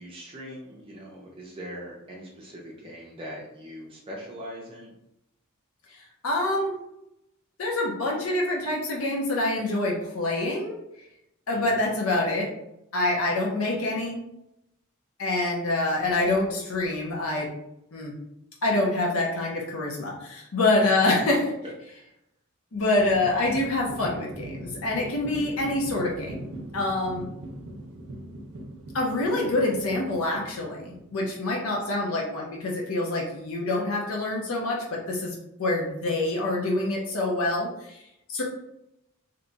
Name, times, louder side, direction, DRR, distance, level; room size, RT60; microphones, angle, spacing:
voice 1, 0.0-4.9 11.5-11.8 13.6-14.0 20.8-21.2 21.9-22.1 29.2-29.6, equal, 25° right, -4 dB, 0.6 m, -42 dB
voice 2, 6.2-6.7 7.6-10.8 11.5-12.5 12.9-14.2 15.2-17.5 17.9-18.1 18.6-21.4 22.7-27.3 28.9-38.0 38.3-38.4, left 2 dB, 70° left, -2 dB, 0.7 m, -26 dB
sound 1, 23.0-31.3, right 1 dB, 75° right, 0.6 m, -41 dB
2.9 x 2.3 x 3.9 m, 0.83 s
head